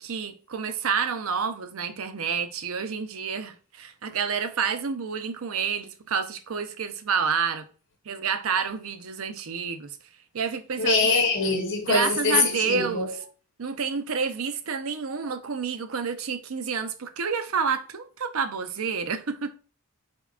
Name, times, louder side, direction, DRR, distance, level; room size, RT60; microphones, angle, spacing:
voice 1, 0.0-7.7 8.1-10.0 10.3-11.1 11.9-13.2 13.6-19.5, right 6 dB, 75° right, 0.6 m, -29 dB
voice 2, 10.8-13.0, left 3 dB, 60° left, 0.9 m, -23 dB
5.1 x 3.5 x 2.4 m
head